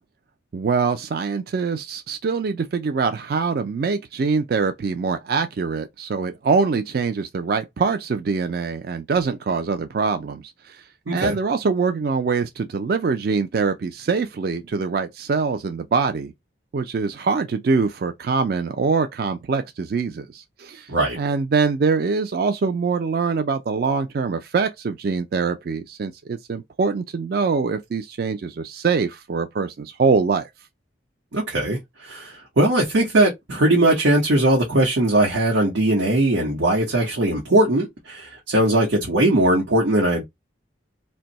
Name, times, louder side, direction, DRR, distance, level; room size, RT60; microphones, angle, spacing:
voice 1, 0.5-10.8 11.1-16.3 16.7-20.9 21.2-30.5, right 5 dB, 50° right, 0.3 m, -23 dB
voice 2, 31.3-40.2, right 1 dB, 85° right, 0.9 m, -20 dB
2.6 x 2.2 x 3.9 m
head